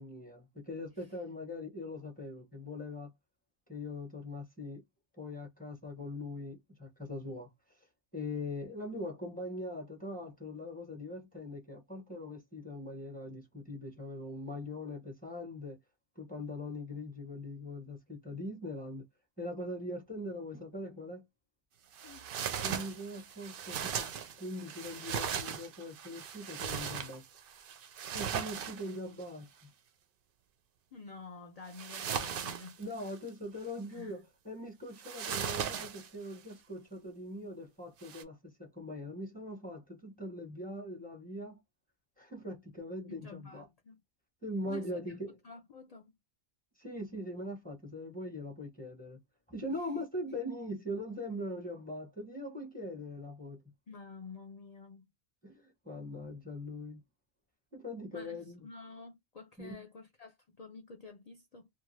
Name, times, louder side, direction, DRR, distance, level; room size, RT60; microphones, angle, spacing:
voice 1, 0.0-3.1 3.7-4.8 5.2-7.5 8.1-15.8 16.2-19.0 19.4-21.2 22.6-27.2 28.1-29.7 32.8-41.6 42.2-43.7 44.4-45.4 46.8-49.2 49.5-53.6 55.4-57.0 57.7-58.7 59.6-59.8, left 1 dB, 10° left, 0.8 m, -41 dB
sound 1, 21.9-29.2 31.7-33.3 35.0-36.3 38.0-38.2, right 8 dB, 60° right, 0.6 m, -38 dB
voice 2, 30.9-32.8 33.9-34.2 43.1-44.0 44.6-45.2 45.4-46.2 49.7-50.0 53.9-55.1 58.1-61.7, left 4 dB, 75° left, 0.3 m, -50 dB
2.6 x 2.3 x 3.1 m
omnidirectional pair, 1.3 m